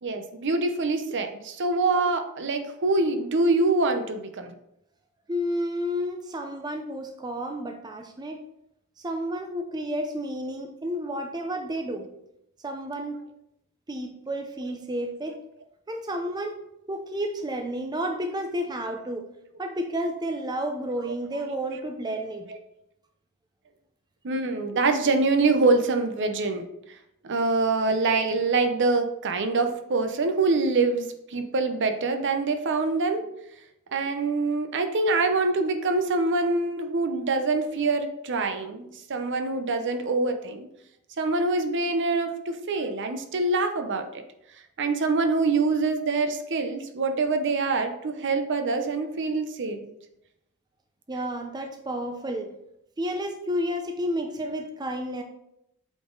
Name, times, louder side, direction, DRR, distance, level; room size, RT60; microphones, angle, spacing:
voice 1, 0.0-4.5 24.2-26.7 27.2-33.2 33.9-40.7 41.2-44.2 44.8-49.9, right 3 dB, 55° right, 7 dB, 0.7 m, -25 dB
voice 2, 5.3-8.4 9.0-12.1 12.6-13.2 13.9-15.4 15.9-16.6 16.9-19.3 19.6-22.5 51.1-52.6 53.0-55.2, equal, 20° right, 4 dB, 0.5 m, -31 dB
8.1 x 4.1 x 3.8 m, 0.80 s
head